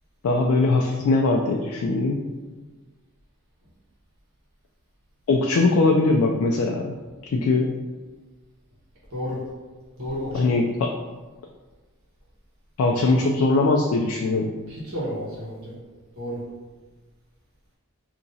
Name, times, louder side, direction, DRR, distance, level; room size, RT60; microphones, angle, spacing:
voice 1, 0.2-2.2 5.3-6.9 7.3-7.7 10.3-10.9 12.8-14.5, left 3 dB, 65° left, 1 dB, 0.3 m, -21 dB
voice 2, 9.1-9.4 10.0-10.5 14.7-15.8 16.1-16.4, equal, 65° right, -7 dB, 1.3 m, -31 dB
2.9 x 2.6 x 3.8 m, 1.3 s
head